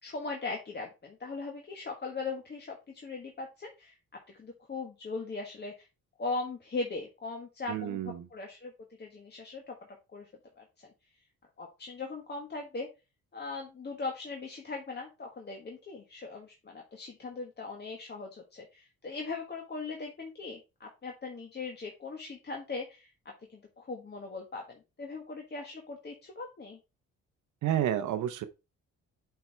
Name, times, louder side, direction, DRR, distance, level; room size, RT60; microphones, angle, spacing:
voice 1, 0.0-3.9 4.3-5.9 6.2-8.7 9.0-9.7 10.1-10.3 10.6-10.9 11.6-12.9 13.3-23.1 23.5-26.8, left 3 dB, 35° left, 1.5 m, -39 dB
voice 2, 7.7-8.3 27.6-28.4, right 11 dB, 75° right, 0.8 m, -30 dB
7.5 x 4.6 x 3.3 m
cardioid pair, 90°, 30 cm